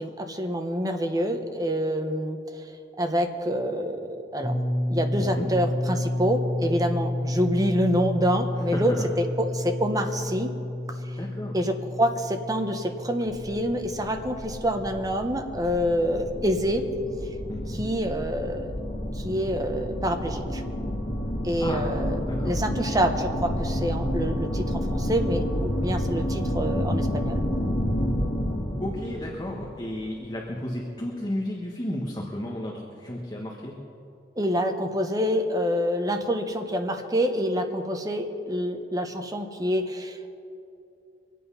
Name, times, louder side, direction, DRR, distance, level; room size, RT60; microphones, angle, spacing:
voice 1, 0.0-2.4 3.0-4.0 4.3-4.5 4.9-8.9 9.2-10.6 11.5-16.9 17.7-18.7 19.2-20.6 21.4-27.4 34.4-40.3, equal, 20° right, 5 dB, 1.1 m, -27 dB
sound 1, 4.4-16.2, left 1 dB, 5° right, 3.7 m, -31 dB
voice 2, 8.7-9.1 11.1-11.6 17.5-17.8 21.6-22.0 22.2-22.6 28.8-33.8, left 1 dB, 25° left, -2 dB, 1.5 m, -33 dB
sound 2, 13.3-30.3, equal, 55° left, 2.3 m, -30 dB
24.5 x 8.5 x 5.6 m, 2.7 s
head